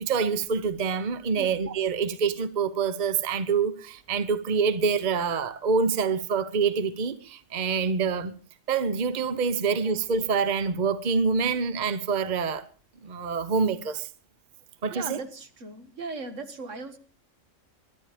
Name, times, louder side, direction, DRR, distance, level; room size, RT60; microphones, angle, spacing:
voice 1, 0.0-8.3 8.7-12.7 13.0-14.1 14.8-15.2, right 5 dB, 40° right, 0.9 m, -26 dB
voice 2, 14.9-17.0, right 3 dB, 75° right, 1.9 m, -38 dB
20.5 x 11.5 x 5.1 m
omnidirectional pair, 1.3 m